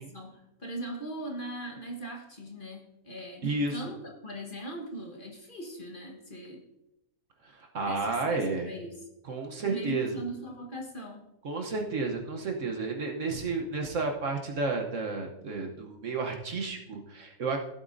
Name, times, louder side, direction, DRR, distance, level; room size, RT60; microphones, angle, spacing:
voice 1, 0.1-4.0 4.2-6.6 7.9-8.9 9.6-11.2, right 1 dB, 35° left, 0 dB, 1.5 m, -40 dB
voice 2, 3.4-3.8 7.4-8.7 9.2-10.2 11.4-17.6, right 3 dB, 55° right, 2 dB, 1.2 m, -31 dB
15.5 x 8.0 x 2.6 m, 0.91 s
omnidirectional pair, 1.6 m